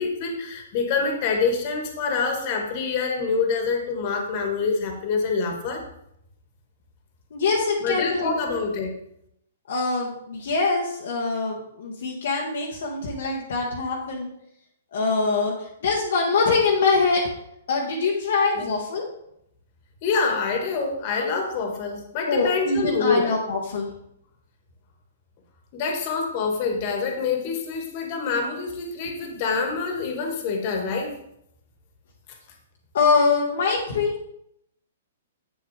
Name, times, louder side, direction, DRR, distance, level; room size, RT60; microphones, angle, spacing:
voice 1, 0.0-5.8 7.8-8.9 18.6-18.7 20.0-23.3 25.7-31.2, left 4 dB, 45° left, 3 dB, 1.7 m, -26 dB
voice 2, 7.3-8.6 9.7-14.3 14.9-17.2 17.7-19.1 22.3-23.9 32.9-34.1, left 4 dB, 65° left, -2 dB, 1.3 m, -24 dB
7.8 x 7.3 x 3.3 m, 0.76 s
hypercardioid pair, 120°, 0 cm